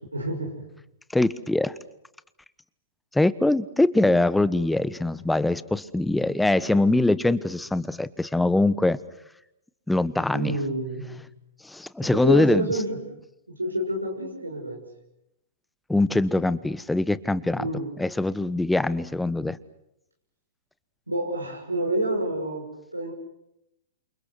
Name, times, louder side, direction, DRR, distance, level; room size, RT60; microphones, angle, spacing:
voice 1, 0.1-0.6 10.3-11.2 12.0-13.2 13.5-14.8 17.6-17.9 21.1-23.1, right 1 dB, 90° right, 0 dB, 6.0 m, -28 dB
voice 2, 1.1-1.7 3.1-9.0 9.9-10.5 11.6-12.7 15.9-17.7 18.0-19.6, left 2 dB, 5° left, 17 dB, 1.2 m, -23 dB
29.0 x 28.0 x 6.2 m, 0.81 s
figure-of-eight pair, 110°, 0 cm